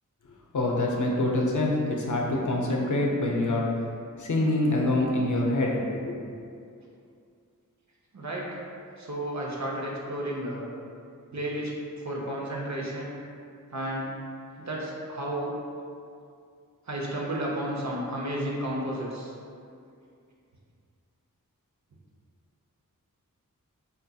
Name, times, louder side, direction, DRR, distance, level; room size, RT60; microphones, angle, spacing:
voice 1, 0.5-3.7 4.2-5.8 6.0-6.2, left 2 dB, 65° left, -2 dB, 0.5 m, -25 dB
voice 2, 8.1-8.6 9.0-10.7 11.3-11.7 12.0-13.2 13.7-14.1 14.6-15.5 16.9-19.3, right 1 dB, 55° right, -3 dB, 0.6 m, -32 dB
3.7 x 2.6 x 2.3 m, 2.4 s
wide cardioid pair, 55°, 33 cm